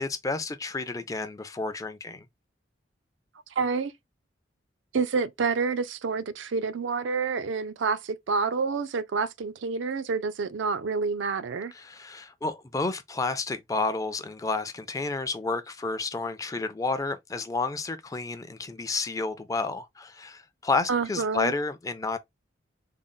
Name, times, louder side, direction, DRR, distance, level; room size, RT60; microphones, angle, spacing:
voice 1, 0.0-2.2 11.7-22.2, left 3 dB, 20° left, 0.4 m, -31 dB
voice 2, 3.6-3.9 4.9-11.7 20.9-21.5, right 5 dB, 80° right, 0.5 m, -28 dB
3.7 x 2.0 x 3.7 m
head